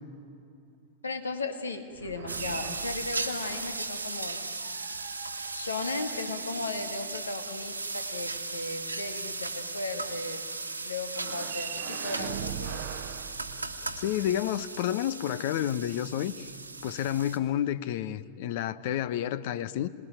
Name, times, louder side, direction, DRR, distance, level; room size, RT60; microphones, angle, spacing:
voice 1, 1.0-4.6 5.5-10.4 10.8-12.8, left 3 dB, 75° left, 6 dB, 2.2 m, -36 dB
sound 1, 1.9-4.0 4.6-7.0 11.1-14.3, right 12 dB, 50° right, 0.9 m, -42 dB
sound 2, 2.3-17.4, right 3 dB, 85° right, 1.9 m, -37 dB
voice 2, 14.0-16.5 16.8-19.9, left 11 dB, 50° left, 15 dB, 0.9 m, -30 dB
27.0 x 20.5 x 9.0 m, 2.6 s
figure-of-eight pair, 90°, 0 cm